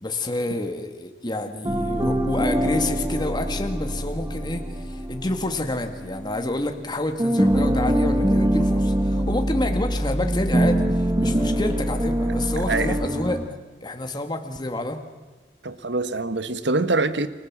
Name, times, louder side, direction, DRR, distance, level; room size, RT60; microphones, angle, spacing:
voice 1, 0.0-13.4 13.8-15.0, left 1 dB, 25° left, 1.9 m, -28 dB
sound 1, 1.6-6.9 7.2-13.5, right 1 dB, 20° right, 1.7 m, -24 dB
voice 2, 12.7-13.0 15.6-17.3, right 3 dB, 90° right, 1.5 m, -24 dB
30.0 x 25.0 x 7.5 m
head